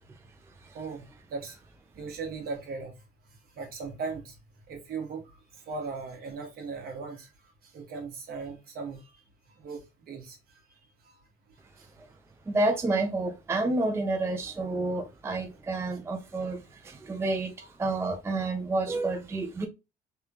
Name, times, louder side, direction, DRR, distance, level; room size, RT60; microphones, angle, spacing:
voice 1, 1.9-2.9 3.6-4.3 4.7-7.3 7.6-9.1 9.6-10.6 11.0-11.2 11.8-11.9, right 4 dB, 60° right, 1.3 m, -38 dB
voice 2, 12.5-19.7, right 2 dB, 15° right, 0.4 m, -29 dB
3.5 x 2.3 x 2.7 m
cardioid pair, 110°, 17 cm